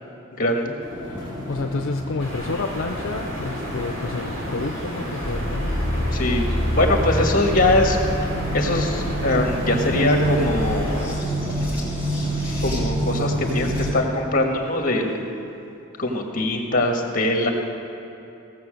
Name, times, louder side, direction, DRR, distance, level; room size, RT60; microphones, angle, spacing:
voice 1, 0.3-0.8 6.1-11.3 12.6-15.2 16.0-17.5, left 1 dB, 40° left, 2 dB, 1.5 m, -22 dB
sound 1, 0.8-14.0, left 1 dB, 25° right, 2.1 m, -34 dB
voice 2, 1.0-6.2, left 3 dB, 65° left, 4 dB, 0.5 m, -30 dB
sound 2, 2.2-11.1, equal, 65° right, 3.2 m, -32 dB
sound 3, 5.2-13.9, equal, 10° right, 2.4 m, -26 dB
16.5 x 7.5 x 6.4 m, 2.8 s
head